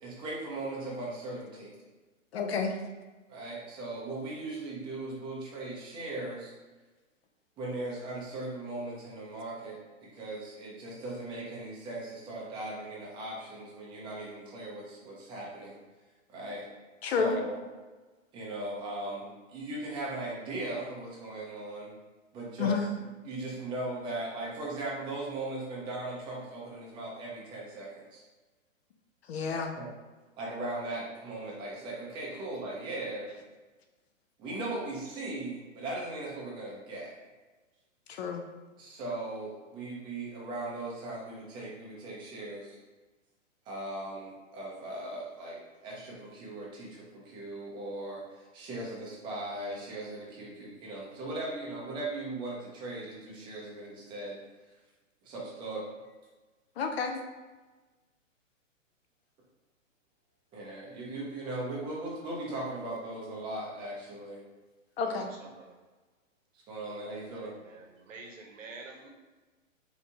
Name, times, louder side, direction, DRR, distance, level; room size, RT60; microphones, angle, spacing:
voice 1, 0.0-1.8 3.3-6.5 7.6-15.8 16.3-16.6 17.0-17.6 18.3-21.9 22.3-22.9 23.2-28.2 29.5-29.9 30.4-33.3 34.4-37.1 38.8-42.8 43.7-54.4 55.2-55.9 60.5-64.4 65.0-65.3 66.7-67.5, right 2 dB, 15° right, -4 dB, 0.5 m, -38 dB
voice 2, 2.3-2.7 17.0-17.3 22.6-22.9 29.3-29.7 38.1-38.4 56.8-57.2 65.0-65.3, left 5 dB, 55° left, 4 dB, 0.5 m, -30 dB
voice 3, 67.3-69.1, right 3 dB, 75° right, 2 dB, 0.8 m, -48 dB
3.2 x 2.8 x 2.7 m, 1.2 s
hypercardioid pair, 125°, 39 cm